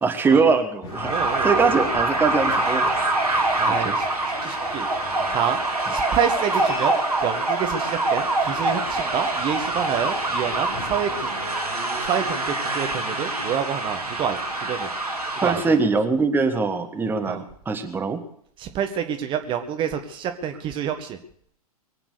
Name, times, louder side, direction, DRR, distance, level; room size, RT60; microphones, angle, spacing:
voice 1, 0.0-1.1 1.4-2.9 3.7-3.9 15.4-18.2, right 4 dB, 10° right, 6 dB, 1.6 m, -22 dB
sound 1, 0.8-12.1, left 3 dB, 30° left, 3.6 m, -41 dB
sound 2, 0.9-15.7, right 2 dB, 75° right, 3.3 m, -25 dB
voice 2, 1.1-1.8 3.6-4.1 4.4-4.9 5.3-5.6 5.9-6.9 7.2-11.3 12.0-14.9 15.4-15.7 17.2-17.4 18.6-21.2, right 8 dB, 25° right, 6 dB, 1.5 m, -27 dB
23.0 x 9.0 x 6.7 m, 0.64 s
figure-of-eight pair, 105°, 19 cm